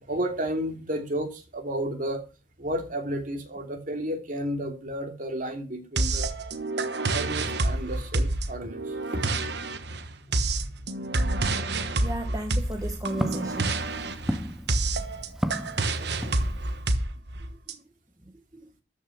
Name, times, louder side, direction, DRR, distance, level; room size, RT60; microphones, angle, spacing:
voice 1, 0.1-2.2 2.6-6.3 7.1-9.3 9.5-9.6 16.0-16.4, right 1 dB, 45° right, 4 dB, 3.0 m, -32 dB
sound 1, 6.0-17.7, right 2 dB, 65° right, 1.3 m, -28 dB
voice 2, 12.0-13.8 17.7-17.8 18.5-18.7, right 1 dB, 20° right, 3 dB, 1.3 m, -34 dB
Walk footsteps, 12.4-16.9, equal, ahead, 0.6 m, -35 dB
13.5 x 6.4 x 6.1 m, 0.31 s
head